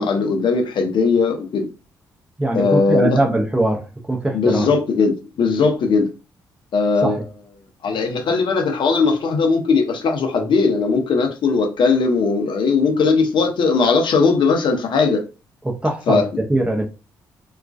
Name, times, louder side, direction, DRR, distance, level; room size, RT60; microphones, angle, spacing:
voice 1, 0.0-1.7 2.5-3.2 4.3-5.1 5.4-6.1 6.7-7.2 7.8-15.2 16.1-16.3, left 4 dB, 50° left, 0.6 m, -18 dB
voice 2, 2.4-4.7 7.0-7.2 15.6-16.8, right 1 dB, 10° right, 0.6 m, -21 dB
2.3 x 2.2 x 2.4 m
figure-of-eight pair, 40°, 10 cm